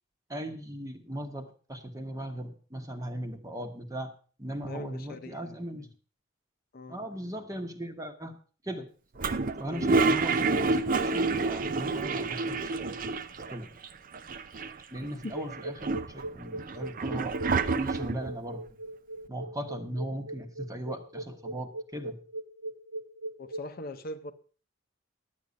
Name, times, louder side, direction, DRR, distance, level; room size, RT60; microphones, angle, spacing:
voice 1, 0.3-4.1 4.4-5.9 6.9-8.4 8.6-8.9 9.6-10.8 11.0-13.0 13.3-13.7 14.9-18.6 19.3-22.2, right 1 dB, 15° right, 6 dB, 1.2 m, -38 dB
voice 2, 4.7-5.7 6.7-7.0 9.6-9.9 15.0-15.3 23.4-24.3, left 1 dB, 45° left, 8 dB, 0.8 m, -41 dB
Toilet flush, 9.2-13.6 13.8-13.9 14.1-15.0 15.5-18.3, right 3 dB, 45° right, 0.6 m, -28 dB
sound 1, 15.3-23.6, right 2 dB, 90° right, 1.7 m, -39 dB
11.0 x 8.5 x 5.2 m, 0.39 s
head